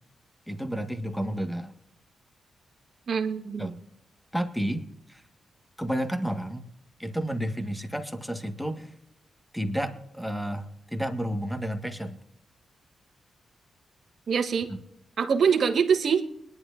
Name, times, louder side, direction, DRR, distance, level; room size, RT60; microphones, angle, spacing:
voice 1, 0.5-1.7 3.6-3.8 4.3-5.2 5.8-6.6 7.0-8.9 9.5-12.2, equal, ahead, 7 dB, 1.6 m, -31 dB
voice 2, 3.1-3.7 14.3-14.7 15.2-16.3, right 6 dB, 65° right, 5 dB, 1.6 m, -24 dB
22.0 x 11.0 x 2.6 m, 0.82 s
cardioid pair, 65°, 0 cm